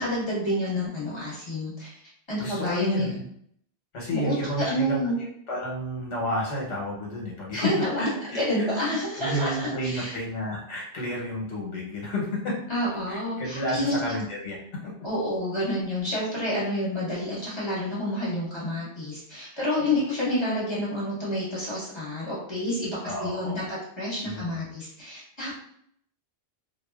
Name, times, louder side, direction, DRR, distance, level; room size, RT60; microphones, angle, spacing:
voice 1, 0.0-1.9 2.3-3.2 4.1-5.2 7.5-10.1 12.7-14.0 15.0-25.6, left 1 dB, 25° left, -8 dB, 1.0 m, -29 dB
voice 2, 2.4-3.2 3.9-5.1 5.5-7.7 8.0-12.6 13.1-14.9 19.8-20.0 23.0-23.7 24.2-24.7, equal, 80° left, -3 dB, 1.2 m, -31 dB
2.6 x 2.2 x 2.2 m, 0.67 s
omnidirectional pair, 1.2 m